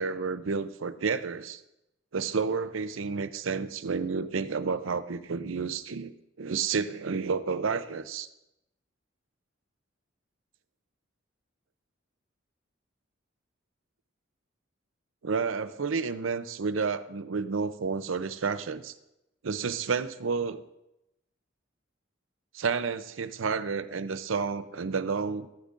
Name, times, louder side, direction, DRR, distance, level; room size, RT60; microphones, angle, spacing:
voice 1, 0.0-1.6 2.1-6.1 6.4-8.3 15.2-18.9 19.4-20.6 22.5-25.5, right 5 dB, 80° right, 12 dB, 0.6 m, -30 dB
14.0 x 11.5 x 2.5 m, 0.89 s
head